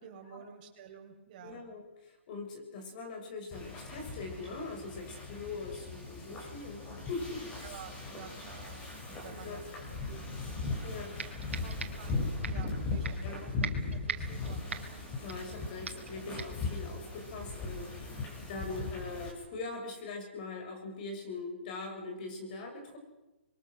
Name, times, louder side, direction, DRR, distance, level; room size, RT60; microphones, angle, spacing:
voice 1, 0.0-1.6 7.6-9.6 10.0-10.2 11.0-11.3 11.6-14.8, right 7 dB, 40° right, 3 dB, 4.9 m, -50 dB
voice 2, 1.4-6.8 7.1-7.8 9.3-9.6 10.8-11.1 13.2-13.4 15.2-23.0, left 3 dB, 45° left, 3 dB, 6.5 m, -42 dB
Wind / Ocean, 3.5-19.3, left 3 dB, 20° left, 6.6 m, -38 dB
sound 1, 10.6-10.7 11.2-12.1 12.4-12.7 13.0-13.3 13.6-15.6 15.9-16.1 16.4-16.7, right 5 dB, 80° right, 3.0 m, -40 dB
26.5 x 22.5 x 6.5 m, 1.0 s
hypercardioid pair, 145°, 6 cm